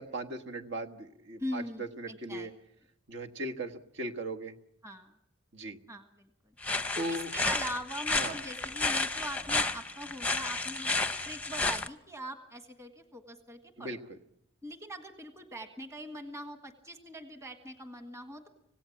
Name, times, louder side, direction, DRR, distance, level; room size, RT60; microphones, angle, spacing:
voice 1, 0.0-2.5 3.1-4.5 5.5-5.8 6.9-7.3 8.2-8.4 13.8-14.2, right 1 dB, 65° right, 4 dB, 1.5 m, -38 dB
voice 2, 1.4-2.5 4.8-5.1 5.9-6.3 6.9-13.9 14.6-18.5, equal, 15° right, 6 dB, 1.6 m, -42 dB
sound 1, 6.6-11.9, left 3 dB, 5° left, 0.7 m, -31 dB
26.0 x 17.0 x 7.2 m, 0.79 s
head